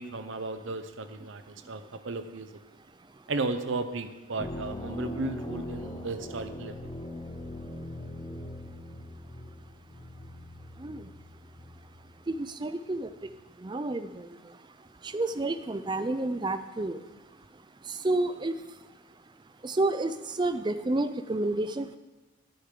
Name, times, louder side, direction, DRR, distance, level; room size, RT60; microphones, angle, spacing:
voice 1, 0.0-2.6 3.3-6.9, right 3 dB, 60° right, 9 dB, 0.7 m, -35 dB
sound 1, 4.4-12.3 13.0-13.4, left 1 dB, 20° left, 0.7 m, -41 dB
voice 2, 12.3-13.1 13.6-14.3 15.1-17.0 18.0-18.5 19.6-22.0, right 2 dB, 20° right, 11 dB, 0.4 m, -30 dB
11.5 x 9.8 x 3.8 m, 1.2 s
head